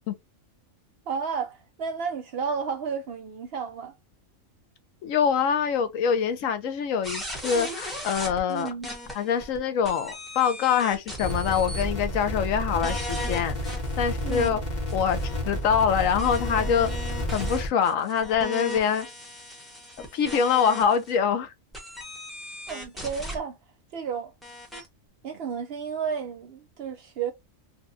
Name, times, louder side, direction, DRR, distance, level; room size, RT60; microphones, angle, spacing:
voice 1, 1.1-3.9 8.5-8.9 14.2-14.6 22.7-23.6 23.9-24.3 25.2-27.3, right 6 dB, 60° right, 0.7 m, -32 dB
voice 2, 5.0-8.7 9.1-13.6 14.0-14.6 14.9-15.2 15.5-16.9 17.3-19.1 20.0-21.5, left 7 dB, 80° left, 1.0 m, -24 dB
sound 1, 7.0-9.6 9.8-11.9 12.2-12.3 12.8-14.5 14.9-21.1 21.7-23.4 24.4-24.9, left 1 dB, ahead, 0.9 m, -37 dB
sound 2, 11.2-17.7, left 1 dB, 35° left, 0.9 m, -31 dB
4.0 x 2.2 x 2.5 m
omnidirectional pair, 1.4 m